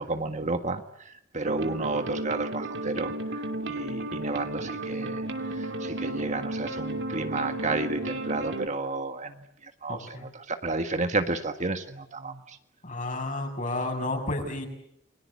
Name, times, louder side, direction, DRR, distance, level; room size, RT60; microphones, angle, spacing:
voice 1, 0.0-3.4 3.7-12.6, right 3 dB, 40° right, 7 dB, 1.7 m, -32 dB
sound 1, 1.4-8.7, right 2 dB, 65° right, 2.8 m, -33 dB
voice 2, 12.8-14.7, left 2 dB, 45° left, 3 dB, 7.0 m, -31 dB
30.0 x 22.5 x 8.5 m, 0.76 s
head